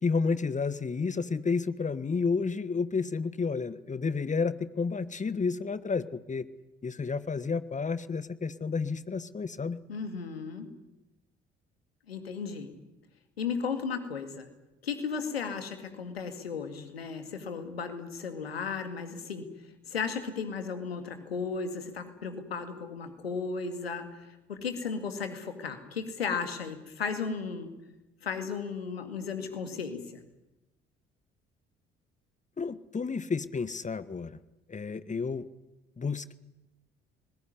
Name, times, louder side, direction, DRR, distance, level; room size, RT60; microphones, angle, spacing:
voice 1, 0.0-6.5 6.8-9.8 32.6-34.4 34.7-35.5 36.0-36.3, left 4 dB, 25° left, 15 dB, 1.4 m, -31 dB
voice 2, 9.9-10.7 12.1-12.7 13.4-14.5 14.8-19.5 19.9-27.7 28.2-30.2, left 5 dB, 85° left, 8 dB, 2.2 m, -35 dB
25.5 x 20.0 x 9.7 m, 1.0 s
figure-of-eight pair, 50°, 30 cm